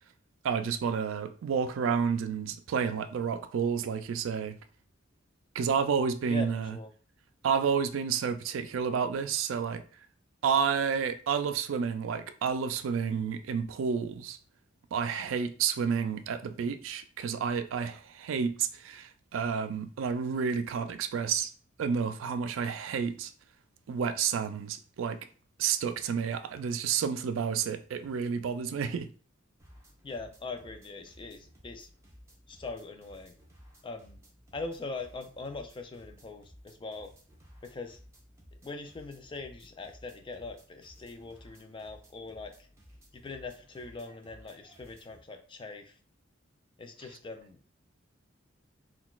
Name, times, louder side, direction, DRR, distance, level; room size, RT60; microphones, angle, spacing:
voice 1, 0.4-4.6 5.5-6.8 7.4-9.8 10.4-14.4 14.9-21.5 21.8-23.3 23.9-25.2 25.6-29.1, right 6 dB, 90° right, 0.3 m, -30 dB
voice 2, 6.3-6.9 30.0-31.9 32.5-33.3 33.8-34.2 34.5-37.1 37.6-38.0 38.6-42.5 43.1-45.9 46.8-47.6, left 3 dB, 25° left, 0.4 m, -41 dB
sound 1, 29.6-45.2, equal, 15° right, 0.9 m, -56 dB
3.8 x 2.3 x 2.3 m
head